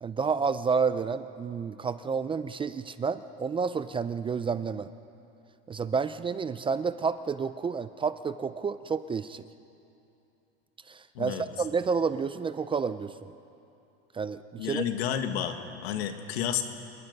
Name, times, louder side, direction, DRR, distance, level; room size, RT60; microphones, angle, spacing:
voice 1, 0.0-4.9 5.7-9.4 10.9-13.3 14.1-14.8, right 5 dB, 15° right, 13 dB, 0.4 m, -30 dB
voice 2, 14.6-16.6, left 9 dB, 80° left, 7 dB, 1.8 m, -31 dB
28.0 x 21.0 x 5.4 m, 2.8 s
supercardioid pair, 125°, 31 cm